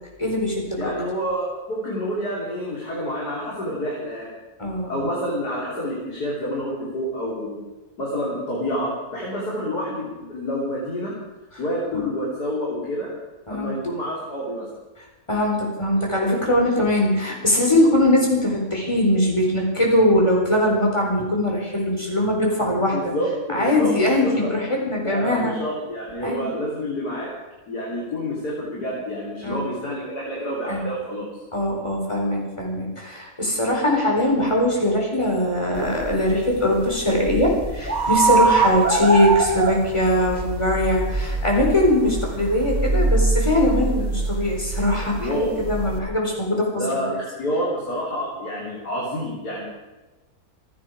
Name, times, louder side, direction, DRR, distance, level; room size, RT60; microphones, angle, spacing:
voice 1, 0.2-0.9 4.6-5.1 11.9-12.0 13.5-13.7 15.3-23.1 23.5-25.5 26.2-26.5 29.4-29.7 30.7-30.8 31.5-47.1, left 1 dB, 20° left, -1 dB, 4.4 m, -21 dB
voice 2, 0.8-4.3 4.9-7.6 8.0-11.2 11.6-13.1 13.5-14.7 22.6-24.5 25.0-27.3 27.7-31.4 45.2-45.6 46.8-49.6, equal, 85° left, -5 dB, 3.9 m, -28 dB
sound 1, 35.8-46.0, right 3 dB, 30° right, 1.5 m, -24 dB
27.0 x 9.8 x 4.9 m, 1.1 s
omnidirectional pair, 1.7 m